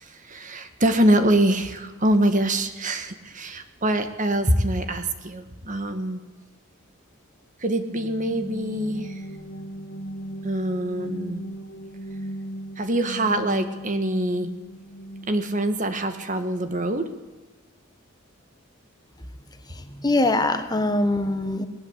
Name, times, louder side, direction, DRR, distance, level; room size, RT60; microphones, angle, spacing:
voice 1, 0.0-6.2 7.6-9.2 10.4-11.5 12.8-14.5 15.3-17.1, right 1 dB, 35° right, 9 dB, 1.8 m, -24 dB
sound 1, 8.0-15.7, right 1 dB, 50° left, 1.8 m, -38 dB
voice 2, 19.7-21.7, left 2 dB, 20° left, 8 dB, 1.5 m, -23 dB
20.0 x 20.0 x 8.4 m, 1.2 s
head